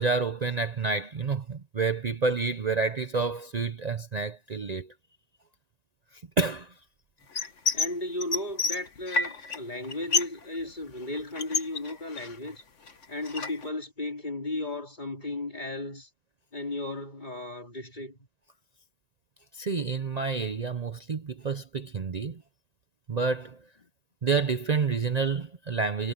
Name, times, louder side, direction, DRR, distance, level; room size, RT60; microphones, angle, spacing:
voice 1, 0.0-4.9 6.1-6.7 19.5-22.4 23.1-23.6 24.2-26.1, right 4 dB, 40° right, 0.8 m, -29 dB
sound 1, 7.4-7.9 8.2-9.6 9.8-10.4 10.7-12.5 12.9-13.7, left 4 dB, 85° left, 2.0 m, -29 dB
voice 2, 7.7-12.6 13.1-16.1 16.5-18.2, left 2 dB, 40° left, 3.7 m, -35 dB
omnidirectional pair, 1.2 m